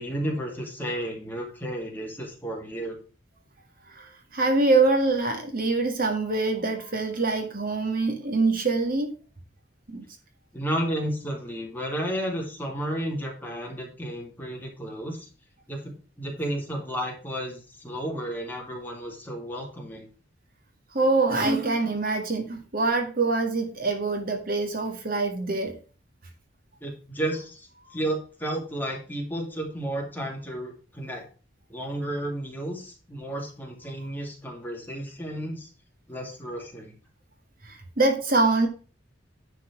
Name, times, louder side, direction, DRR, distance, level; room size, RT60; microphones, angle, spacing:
voice 1, 0.0-3.0 10.5-15.3 15.7-20.1 26.8-31.2 31.7-35.7 36.1-36.9, right 1 dB, 10° left, 0 dB, 2.3 m, -32 dB
voice 2, 3.9-9.1 9.9-10.1 20.9-25.7 37.6-38.7, right 3 dB, 50° right, 3 dB, 1.9 m, -24 dB
10.0 x 4.6 x 5.9 m, 0.37 s
head